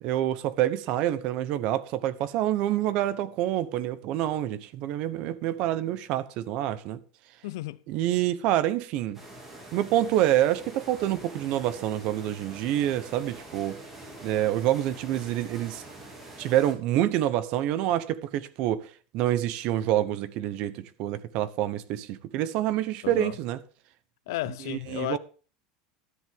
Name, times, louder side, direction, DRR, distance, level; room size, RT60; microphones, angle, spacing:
voice 1, 0.0-7.0 7.9-9.2 9.7-13.8 14.2-15.8 16.4-23.6 24.5-25.2, right 12 dB, 40° right, 1.0 m, -27 dB
voice 2, 7.4-7.8 23.0-23.3 24.3-25.2, left 17 dB, 75° left, 0.6 m, -33 dB
sound 1, 9.1-16.7, right 1 dB, 10° right, 3.3 m, -45 dB
13.0 x 10.5 x 3.7 m
supercardioid pair, 175°, 2 cm